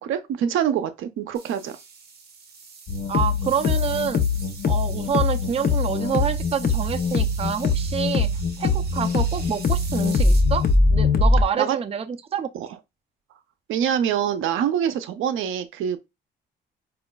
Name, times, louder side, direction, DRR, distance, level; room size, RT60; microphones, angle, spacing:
voice 1, 0.0-1.8 11.6-11.8 12.5-12.7 13.7-16.0, right 9 dB, 80° right, 0.5 m, -25 dB
sound 1, 1.3-10.7, right 5 dB, 55° right, 1.1 m, -43 dB
sound 2, 2.9-11.4, left 3 dB, 55° left, 0.7 m, -22 dB
voice 2, 3.1-4.2 4.7-8.3 8.6-12.5, right 7 dB, 30° right, 0.4 m, -27 dB
4.8 x 2.3 x 2.2 m
cardioid pair, 90°, 20 cm